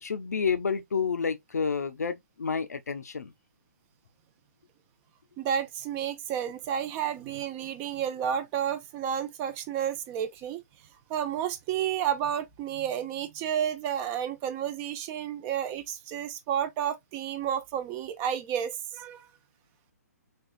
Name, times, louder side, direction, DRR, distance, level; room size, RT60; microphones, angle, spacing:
voice 1, 0.0-3.3, left 6 dB, 70° left, 0.6 m, -29 dB
voice 2, 5.4-10.6 11.1-19.3, right 9 dB, 25° right, 0.5 m, -31 dB
4.3 x 2.4 x 2.4 m
figure-of-eight pair, 130°, 9 cm